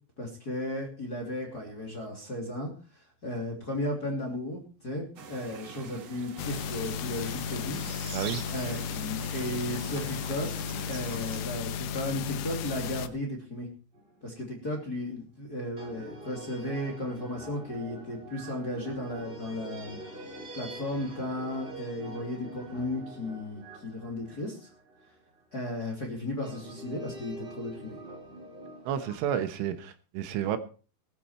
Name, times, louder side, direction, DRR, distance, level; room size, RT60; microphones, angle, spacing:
voice 1, 0.2-8.2 8.5-10.5 10.9-13.7 14.2-20.0 20.3-24.7 25.5-28.0, left 1 dB, 25° left, 2.5 m, -35 dB
sound 1, 5.2-11.4, right 6 dB, 55° right, 1.9 m, -44 dB
sound 2, 6.4-13.1, left 7 dB, 80° left, 3.5 m, -34 dB
sound 3, 13.9-14.4 15.8-25.4 26.4-29.2, right 1 dB, 10° right, 4.2 m, -45 dB
voice 2, 28.9-30.6, right 9 dB, 80° right, 3.6 m, -31 dB
19.5 x 9.8 x 4.4 m
omnidirectional pair, 5.6 m